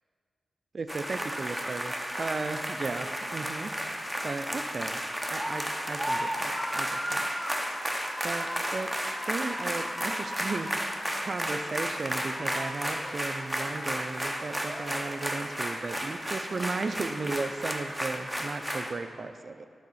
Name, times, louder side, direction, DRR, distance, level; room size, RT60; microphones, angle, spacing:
voice 1, 0.7-3.7 4.2-5.0 5.3-7.3 8.2-19.7, right 3 dB, 50° right, 9 dB, 0.4 m, -36 dB
sound 1, 0.9-18.9, equal, 5° right, 0.6 m, -33 dB
9.3 x 4.2 x 5.5 m, 2.2 s
wide cardioid pair, 90°, 0 cm